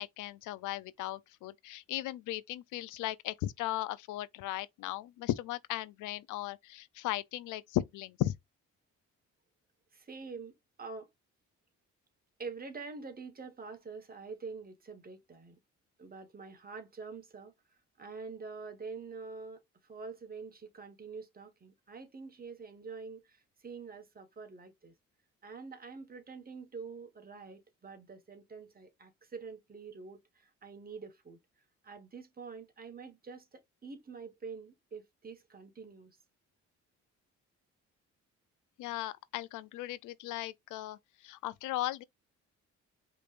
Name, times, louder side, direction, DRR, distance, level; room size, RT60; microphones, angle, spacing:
voice 1, 0.0-8.4 38.8-42.0, left 15 dB, 90° left, 0.5 m, -37 dB
voice 2, 9.9-11.1 12.4-15.6 16.0-17.5 18.0-24.9 25.4-31.4 31.8-36.2, right 4 dB, 30° right, 1.4 m, -46 dB
5.1 x 3.2 x 2.5 m
cardioid pair, 90°, 30 cm